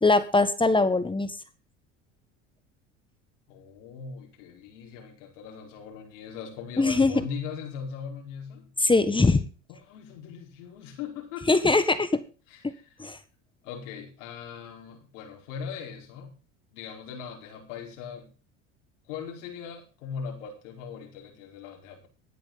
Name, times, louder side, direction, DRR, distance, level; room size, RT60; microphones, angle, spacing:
voice 1, 0.0-1.4 6.8-7.1 8.8-9.4 11.5-12.2 12.6-12.7 13.0-13.2, left 3 dB, 15° left, 12 dB, 1.6 m, -22 dB
voice 2, 3.5-8.7 9.7-11.6 12.5-12.8 13.6-16.3 16.7-18.3 19.1-22.1, left 6 dB, 80° left, 2 dB, 4.8 m, -40 dB
18.0 x 10.5 x 3.8 m, 0.33 s
hypercardioid pair, 85°, 36 cm